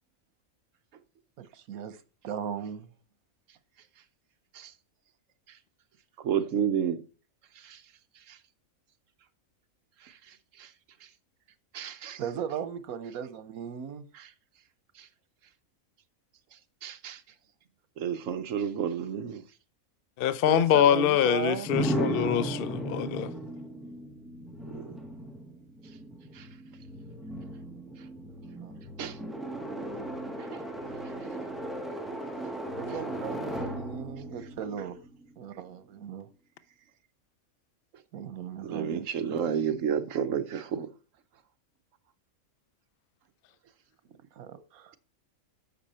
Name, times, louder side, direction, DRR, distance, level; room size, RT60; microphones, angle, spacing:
voice 1, 1.4-2.0 2.2-2.9 11.8-11.9 12.2-14.0 20.5-21.7 28.6-28.8 32.7-35.0 35.4-36.3 38.1-39.5 44.3-45.0, right 8 dB, 85° right, 1.3 m, -37 dB
voice 2, 6.2-7.0 7.6-7.8 8.3-8.4 10.0-10.7 11.7-12.2 14.1-14.3 15.0-15.1 16.8-17.2 18.0-19.4 24.7-24.9 26.3-26.5 29.0-29.2 30.4-30.6 38.6-40.9, right 8 dB, 65° right, 1.1 m, -31 dB
voice 3, 20.2-23.3, left 10 dB, 60° left, 0.6 m, -24 dB
sound 1, 21.7-35.5, right 1 dB, ahead, 0.7 m, -36 dB
8.3 x 6.1 x 4.2 m
omnidirectional pair, 1.5 m